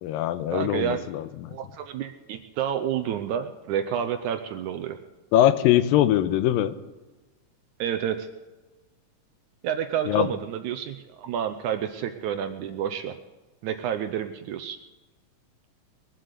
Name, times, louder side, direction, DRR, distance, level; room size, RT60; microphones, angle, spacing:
voice 1, 0.0-1.5 5.3-6.7 10.1-10.3, left 12 dB, 85° left, 13 dB, 2.4 m, -22 dB
voice 2, 0.5-1.0 1.5-5.0 7.8-8.3 9.6-13.2 13.6-14.8, right 9 dB, 80° right, 8 dB, 1.9 m, -29 dB
22.0 x 7.7 x 6.7 m, 1.2 s
omnidirectional pair, 4.1 m